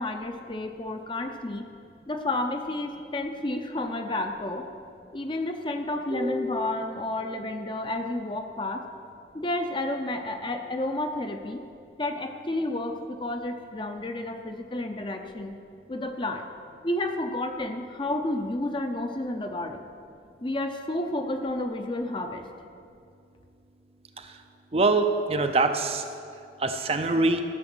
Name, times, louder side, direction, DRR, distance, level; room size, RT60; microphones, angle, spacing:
voice 1, 0.0-1.7 2.1-4.7 5.1-8.9 9.3-11.6 12.0-15.6 15.9-16.5 16.8-19.8 20.4-22.4, left 1 dB, 25° left, 6 dB, 0.7 m, -31 dB
voice 2, 6.1-6.7 24.7-26.0 26.6-27.4, right 2 dB, 35° right, 7 dB, 0.6 m, -24 dB
14.5 x 6.9 x 6.2 m, 2.4 s
head